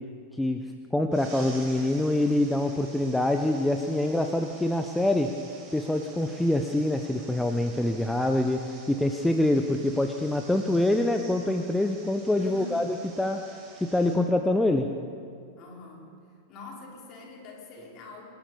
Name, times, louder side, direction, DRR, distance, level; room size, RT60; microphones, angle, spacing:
voice 1, 0.9-5.3 5.7-13.4 13.8-14.9, left 1 dB, 5° left, 5 dB, 1.0 m, -25 dB
sound 1, 1.1-14.1, right 3 dB, 35° right, 5.6 m, -49 dB
voice 2, 12.4-12.9 15.6-16.1 16.5-18.3, left 2 dB, 35° left, -2 dB, 5.6 m, -44 dB
27.0 x 11.5 x 8.6 m, 2.3 s
figure-of-eight pair, 90°, 0 cm